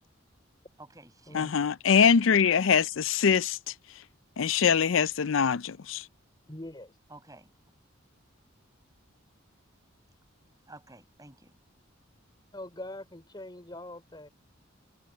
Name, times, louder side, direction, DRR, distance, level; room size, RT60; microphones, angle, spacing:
voice 1, 0.8-1.7 7.1-7.5 10.7-11.5, right 2 dB, 15° right, 5.8 m, -51 dB
voice 2, 1.3-3.6 4.4-6.0, left 6 dB, 65° left, 0.5 m, -23 dB
voice 3, 6.5-7.0 12.5-14.3, left 1 dB, 20° left, 3.8 m, -43 dB
head